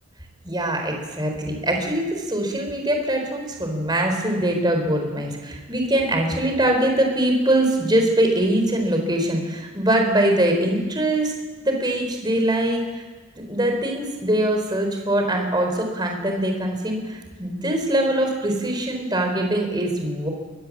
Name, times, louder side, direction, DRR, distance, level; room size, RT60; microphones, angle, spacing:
voice 1, 0.4-11.3 11.6-13.0 13.5-20.3, right 1 dB, 20° right, 3 dB, 4.1 m, -22 dB
23.5 x 19.0 x 7.5 m, 1.3 s
head